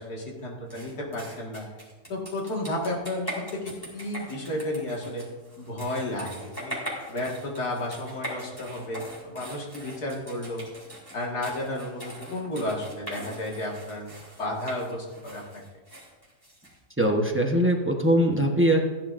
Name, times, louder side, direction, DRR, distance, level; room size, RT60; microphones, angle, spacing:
voice 1, 0.0-1.7 2.1-5.3 5.6-6.8 7.1-10.6 11.1-14.1 14.4-15.6, left 1 dB, 70° left, -2 dB, 2.4 m, -32 dB
sound 1, 0.7-17.1, equal, 15° left, 3.2 m, -41 dB
voice 2, 17.0-18.8, right 1 dB, 10° right, 0 dB, 0.8 m, -21 dB
14.5 x 10.5 x 2.6 m, 1.3 s
omnidirectional pair, 1.7 m